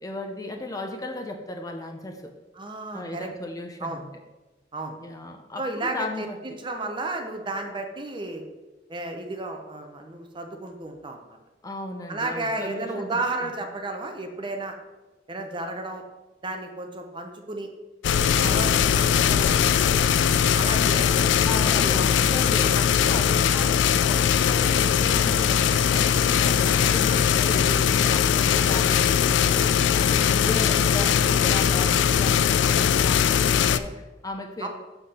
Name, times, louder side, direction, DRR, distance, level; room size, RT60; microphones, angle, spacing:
voice 1, 0.0-2.3 2.9-4.1 5.0-6.6 11.6-13.1 13.4-13.5 21.2-34.7, left 1 dB, 20° left, 4 dB, 0.6 m, -36 dB
voice 2, 2.6-3.3 3.8-4.0 4.7-5.0 5.6-8.4 8.9-11.4 12.1-14.7 15.3-16.0 16.4-17.7 18.4-20.1 20.6-21.3 21.6-22.0 26.6-27.3 34.6-34.7, right 2 dB, 25° right, 4 dB, 0.7 m, -33 dB
sound 1, 18.0-33.8, left 8 dB, 80° left, 0.3 m, -20 dB
6.8 x 5.7 x 4.2 m, 1.1 s
head